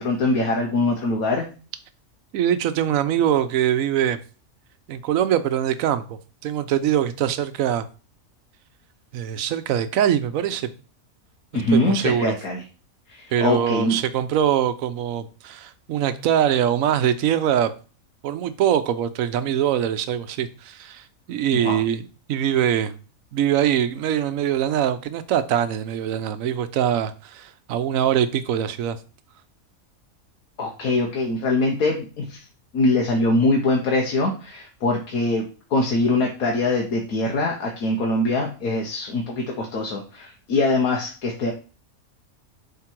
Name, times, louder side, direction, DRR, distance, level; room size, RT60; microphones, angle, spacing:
voice 1, 0.0-1.4 11.5-12.6 13.1-14.0 21.6-21.8 30.6-32.4 32.7-35.4 35.7-41.5, left 2 dB, 85° left, 1.5 m, -23 dB
voice 2, 2.3-4.2 4.9-7.9 9.1-10.7 11.5-12.4 13.3-17.7 18.2-23.0 23.3-29.0, right 10 dB, 75° right, 1.1 m, -23 dB
7.5 x 3.7 x 4.5 m
omnidirectional pair, 1.5 m